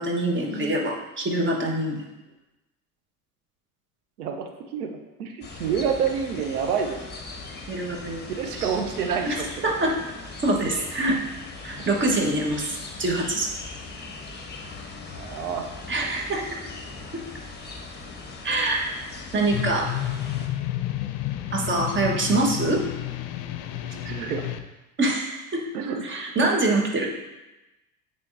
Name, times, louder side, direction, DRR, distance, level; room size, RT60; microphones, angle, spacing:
voice 1, 0.0-2.1 7.7-8.2 8.6-8.7 9.3-9.4 9.6-10.0 10.4-11.2 11.6-13.5 15.9-16.5 18.4-19.0 19.3-19.9 21.5-22.8 25.0-25.6 26.0-27.1, right 2 dB, 25° right, 0 dB, 1.4 m, -25 dB
voice 2, 4.2-4.9 5.2-7.0 8.4-9.5 9.8-9.9 11.8-11.9 15.1-15.7 23.9-24.4 25.7-26.3, right 7 dB, 80° right, 3 dB, 0.9 m, -28 dB
sound 1, 5.4-20.5, left 3 dB, 25° left, 1.1 m, -40 dB
sound 2, 19.5-24.6, left 13 dB, 55° left, 0.6 m, -30 dB
9.8 x 3.7 x 2.7 m, 1.0 s
hypercardioid pair, 75°, 44 cm